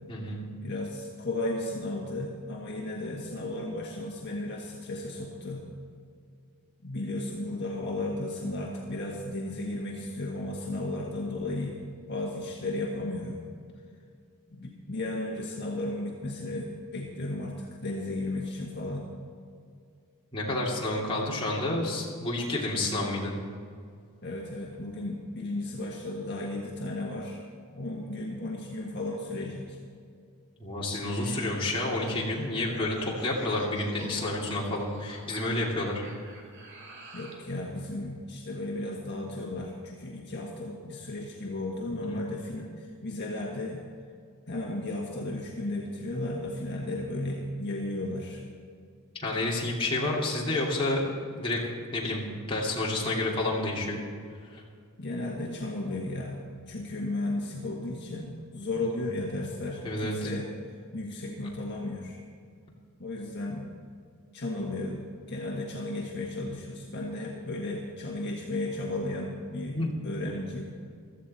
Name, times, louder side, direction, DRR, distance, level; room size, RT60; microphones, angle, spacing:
voice 1, 0.1-0.5 20.3-23.3 30.6-36.0 42.1-42.2 49.2-51.6 51.9-54.0 54.5-54.6 59.8-60.3 69.7-69.9, left 2 dB, 25° left, -4 dB, 2.6 m, -30 dB
voice 2, 0.6-5.6 6.8-11.8 12.0-13.4 14.5-19.1 24.2-27.4 27.7-29.8 37.1-43.8 44.5-48.4 55.0-60.5 60.9-62.2 63.0-63.7 64.3-69.8 70.0-70.7, left 2 dB, 50° left, -2 dB, 1.6 m, -34 dB
sound 1, 30.9-37.5, right 2 dB, 55° right, 2.4 m, -47 dB
16.0 x 13.5 x 4.3 m, 2.2 s
head